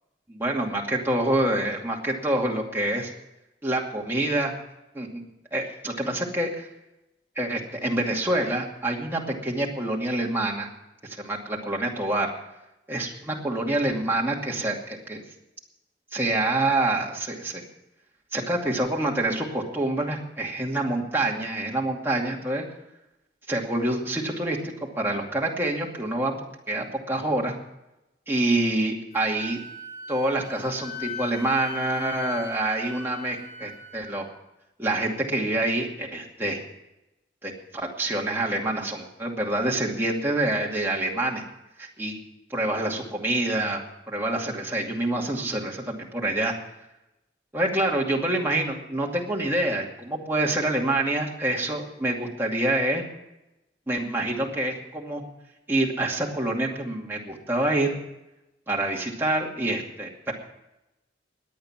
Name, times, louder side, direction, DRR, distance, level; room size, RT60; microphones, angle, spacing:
voice 1, 0.3-3.1 3.6-4.5 4.9-5.2 5.5-6.7 7.4-10.7 11.0-12.3 12.9-15.2 16.1-17.6 18.3-22.6 23.5-27.5 28.3-29.6 30.1-34.3 34.8-36.6 37.4-41.4 41.8-42.1 42.5-43.8 44.1-46.5 47.5-53.0 53.9-55.2 55.7-57.9 58.7-60.3, right 1 dB, 15° right, -2 dB, 2.4 m, -26 dB
Wind instrument woodwind instrument, 29.1-34.3, left 3 dB, 35° left, 6.5 m, -39 dB
21.5 x 8.7 x 6.0 m, 0.93 s
head